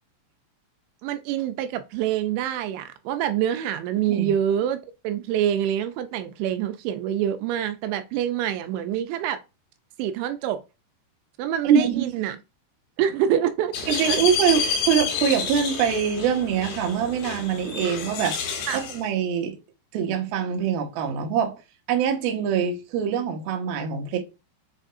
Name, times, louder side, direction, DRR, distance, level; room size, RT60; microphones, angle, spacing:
voice 1, 1.0-4.8 5.0-9.4 10.0-10.6 11.4-12.4 13.0-14.2 18.7-18.8, right 10 dB, 85° right, 3.0 m, -26 dB
voice 2, 11.6-12.1 13.9-18.4 18.7-19.6 19.9-21.5 21.9-24.2, right 8 dB, 65° right, 2.8 m, -24 dB
sound 1, 13.7-19.0, left 5 dB, 85° left, 3.5 m, -29 dB
7.4 x 5.0 x 2.6 m
omnidirectional pair, 5.3 m